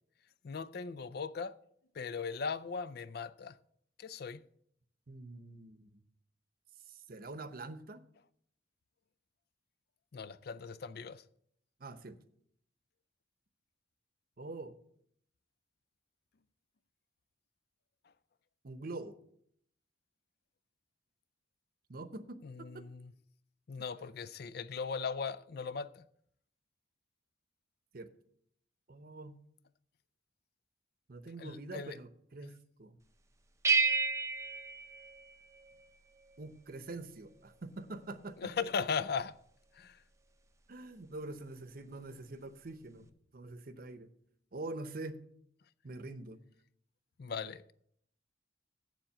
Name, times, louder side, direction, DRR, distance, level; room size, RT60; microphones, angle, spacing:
voice 1, 0.4-1.6 2.0-3.5 4.0-4.4 10.1-11.2 22.4-23.1 23.7-26.0 31.4-32.0 38.4-39.3 39.7-40.0 47.2-47.7, left 5 dB, 55° left, 0.4 m, -38 dB
voice 2, 5.1-6.0 6.9-8.0 11.8-12.2 14.4-14.7 18.6-19.2 21.9-22.9 27.9-28.1 28.9-29.4 31.1-33.0 36.4-38.5 40.7-43.1 43.3-44.1 44.5-45.2 45.8-46.4, right 2 dB, 50° right, 0.8 m, -45 dB
sound 1, 33.6-35.9, right 4 dB, 15° right, 0.6 m, -31 dB
7.6 x 7.3 x 7.6 m
head